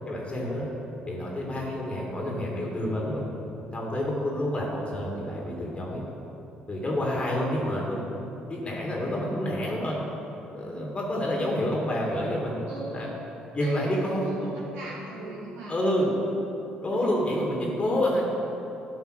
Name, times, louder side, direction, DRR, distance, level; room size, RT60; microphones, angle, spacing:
voice 1, 0.1-0.7 1.1-3.3 3.7-6.0 6.7-8.0 8.5-10.0 10.5-13.1 13.5-14.3 15.7-16.1 16.8-18.2, left 1 dB, 25° left, -2 dB, 2.2 m, -28 dB
voice 2, 12.7-13.2 13.6-16.3 16.9-17.1, right 2 dB, 60° right, -5 dB, 1.9 m, -40 dB
12.5 x 5.2 x 6.4 m, 3.0 s
figure-of-eight pair, 50°, 4 cm